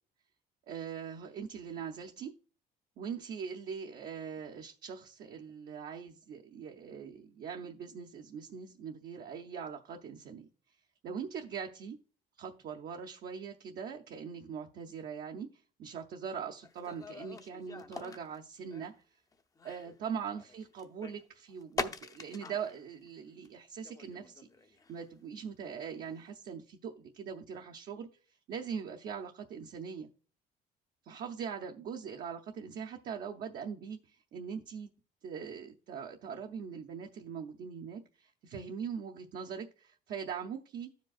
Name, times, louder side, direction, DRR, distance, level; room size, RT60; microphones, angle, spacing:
voice 1, 0.7-2.3 3.0-10.5 11.0-12.0 12.4-18.9 19.6-28.1 28.5-30.1 31.0-34.9 35.2-40.9, right 7 dB, 60° right, 0.7 m, -42 dB
sound 1, 16.6-18.9 19.3-22.8 23.1-23.2 23.4-23.5 23.8-25.0 26.1-26.2, left 3 dB, 20° left, 0.6 m, -43 dB
13.5 x 5.2 x 2.4 m
cardioid pair, 110°, 17 cm